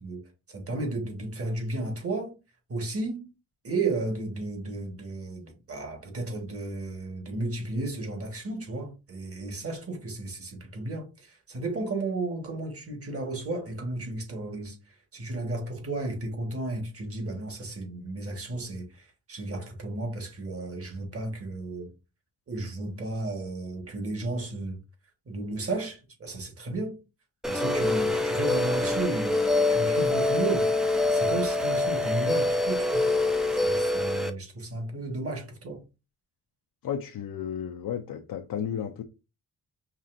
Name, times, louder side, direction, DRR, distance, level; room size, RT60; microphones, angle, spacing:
voice 1, 0.5-2.3 2.7-3.3 3.6-14.8 15.1-21.9 22.5-24.8 25.3-27.0 27.5-33.1 33.5-35.8, right 2 dB, 35° right, 1.5 m, -33 dB
sound 1, 27.4-34.3, left 2 dB, ahead, 0.5 m, -25 dB
voice 2, 36.8-39.0, left 8 dB, 60° left, 0.6 m, -33 dB
5.5 x 2.6 x 2.5 m
cardioid pair, 105°, 39 cm